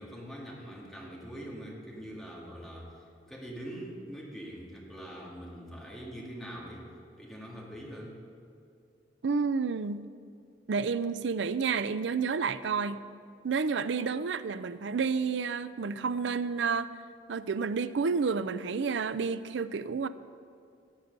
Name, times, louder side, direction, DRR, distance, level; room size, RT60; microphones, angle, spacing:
voice 1, 0.0-6.9 7.2-8.2, equal, ahead, -4 dB, 2.0 m, -43 dB
voice 2, 9.2-10.0 10.7-13.1 13.4-16.9 17.3-20.1, right 5 dB, 85° right, 14 dB, 0.5 m, -30 dB
16.0 x 8.1 x 5.3 m, 2.5 s
head